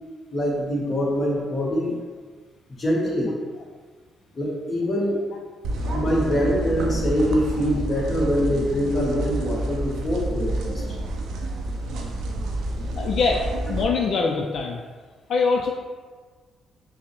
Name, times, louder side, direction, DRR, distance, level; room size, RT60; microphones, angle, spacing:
voice 1, 0.3-2.0 2.8-3.3 4.3-5.2 5.9-10.8, equal, 30° left, -3 dB, 1.0 m, -24 dB
sound 1, 5.6-13.8, right 1 dB, 80° right, 0.4 m, -28 dB
voice 2, 13.0-13.4 13.7-14.8 15.3-15.7, left 4 dB, 65° left, 0 dB, 0.3 m, -23 dB
5.4 x 2.0 x 2.9 m, 1.4 s
cardioid pair, 90°, 0 cm